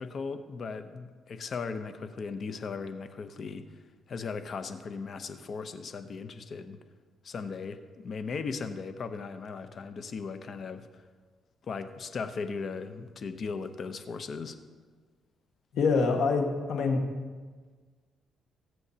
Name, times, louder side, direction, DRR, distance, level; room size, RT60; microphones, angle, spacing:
voice 1, 0.0-3.7 4.1-6.8 7.2-10.9 11.7-14.6, left 5 dB, 50° left, 9 dB, 0.8 m, -37 dB
voice 2, 15.7-17.0, left 4 dB, 75° left, 2 dB, 1.6 m, -25 dB
19.0 x 7.9 x 2.9 m, 1.5 s
cardioid pair, 90°, 0 cm